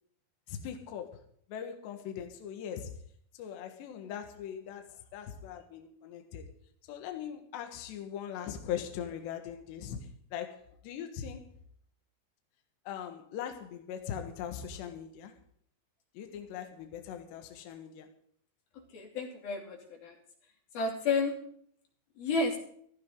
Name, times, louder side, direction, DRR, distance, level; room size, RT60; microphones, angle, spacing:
voice 1, 0.5-1.2 1.5-2.9 3.4-6.5 6.9-11.4 12.9-15.3 16.2-18.1, left 9 dB, 70° left, 3.5 m, -40 dB
voice 2, 18.7-20.2 20.7-21.3 22.2-22.6, left 3 dB, 55° left, 4.5 m, -31 dB
16.0 x 15.0 x 3.8 m
omnidirectional pair, 5.4 m